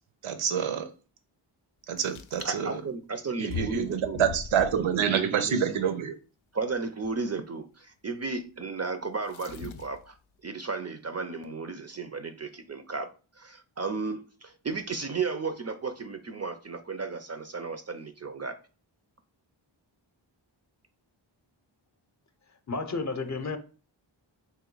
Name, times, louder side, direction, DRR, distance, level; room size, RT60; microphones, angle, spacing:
voice 1, 0.2-0.9 1.9-2.7 3.4-6.1, right 8 dB, 80° right, 0.6 m, -27 dB
sound 1, 2.0-2.5 3.5-5.1 7.0-7.2 9.2-10.1, left 6 dB, 80° left, 0.5 m, -40 dB
voice 2, 2.4-5.8 6.5-10.2 10.4-13.1 13.4-18.5, right 4 dB, 35° right, 0.4 m, -34 dB
voice 3, 22.7-23.6, left 3 dB, 35° left, 0.6 m, -31 dB
3.0 x 2.7 x 3.8 m
cardioid pair, 45°, 48 cm